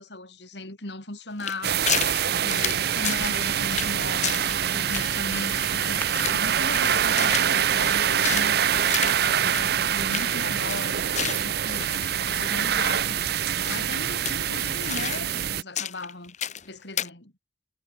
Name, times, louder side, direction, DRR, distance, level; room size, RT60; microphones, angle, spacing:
voice 1, 0.0-2.0 2.3-13.2 13.4-16.3 16.6-17.3, left 2 dB, 65° left, 5.0 m, -37 dB
sound 1, 1.4-2.2 2.5-3.4 3.7-4.0 4.2-4.6 4.9-6.4 6.7-8.5 8.9-9.2 9.5-9.6 9.9-10.3 10.7-12.5 12.9-13.0 13.6-13.9 14.3-15.5 15.8-16.7 17.0-17.1, left 9 dB, 40° left, 1.1 m, -32 dB
sound 2, 1.6-15.6, right 9 dB, 55° right, 0.6 m, -25 dB
Traffic noise roadway noise, 3.2-8.5, left 1 dB, 10° left, 7.0 m, -46 dB
head